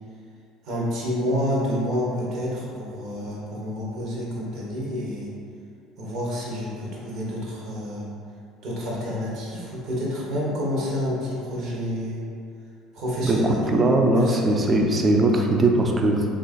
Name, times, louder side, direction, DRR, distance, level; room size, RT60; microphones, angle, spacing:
voice 1, 0.6-5.3 6.0-8.1 8.6-12.2 12.9-13.7 14.1-14.6, equal, 50° right, -5 dB, 0.8 m, -29 dB
voice 2, 13.2-16.3, right 2 dB, 25° right, 1 dB, 0.3 m, -20 dB
3.2 x 2.3 x 2.5 m, 2.4 s
figure-of-eight pair, 60°, 0 cm